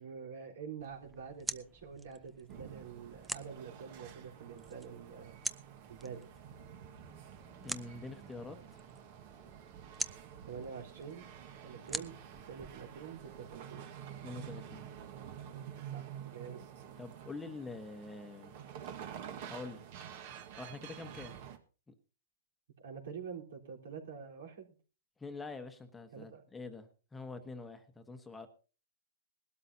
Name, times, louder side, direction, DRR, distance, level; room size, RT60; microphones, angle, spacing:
voice 1, 0.0-5.4 5.9-6.3 10.5-11.2 11.6-12.1 12.5-13.9 15.9-16.8 22.8-24.7 26.1-26.4, right 6 dB, 75° right, 0 dB, 4.0 m, -46 dB
sound 1, 0.8-13.6, right 2 dB, 5° right, 0.6 m, -47 dB
sound 2, 2.5-21.6, right 9 dB, 50° right, 1.6 m, -49 dB
voice 2, 7.6-8.8 14.2-14.9 17.0-18.5 19.5-19.8 20.6-21.4 21.9-22.0 25.2-28.5, left 3 dB, 10° left, 7 dB, 1.2 m, -45 dB
20.0 x 12.5 x 2.8 m, 0.35 s
hypercardioid pair, 145°, 0 cm